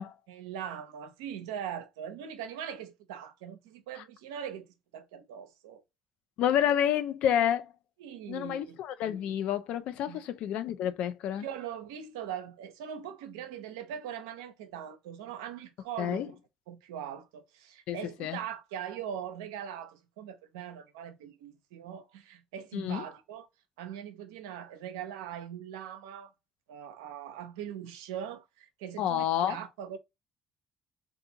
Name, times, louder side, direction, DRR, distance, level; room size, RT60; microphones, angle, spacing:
voice 1, 0.3-4.7 4.9-5.8 8.0-8.8 10.1-10.2 11.3-16.3 16.7-23.5 23.8-26.3 26.7-30.0, right 9 dB, 90° right, 0.4 m, -41 dB
voice 2, 6.4-7.7 8.3-11.5 16.0-16.3 17.9-18.4 22.7-23.1 29.0-29.6, left 10 dB, 70° left, 0.3 m, -29 dB
2.6 x 2.3 x 2.6 m
hypercardioid pair, 60°, 2 cm